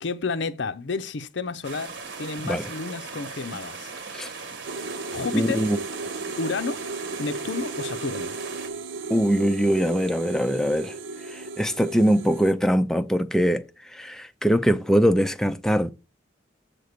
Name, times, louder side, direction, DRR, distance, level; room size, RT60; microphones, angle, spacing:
voice 1, 0.0-3.9 5.1-5.6 6.4-6.8 7.2-8.3, left 4 dB, 65° left, 0.6 m, -31 dB
sound 1, 1.6-8.7, right 4 dB, 60° right, 1.4 m, -38 dB
sound 2, 4.7-12.5, right 3 dB, 80° right, 0.7 m, -35 dB
voice 2, 5.3-5.8 9.1-11.0 11.3-15.9, equal, 5° left, 0.4 m, -22 dB
8.1 x 3.7 x 6.6 m
head